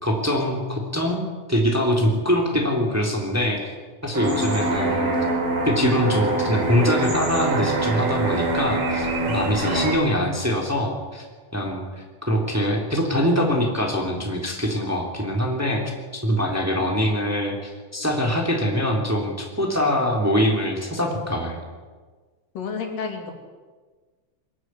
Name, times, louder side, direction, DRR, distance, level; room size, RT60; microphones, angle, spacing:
voice 1, 0.0-3.7 4.0-5.1 5.6-11.2 11.5-21.6, equal, 5° right, 1 dB, 3.1 m, -23 dB
sound 1, 4.1-9.9, right 2 dB, 85° right, 5.6 m, -24 dB
voice 2, 22.5-23.3, left 5 dB, 90° left, 3 dB, 4.4 m, -30 dB
23.5 x 12.5 x 9.7 m, 1.4 s
omnidirectional pair, 3.8 m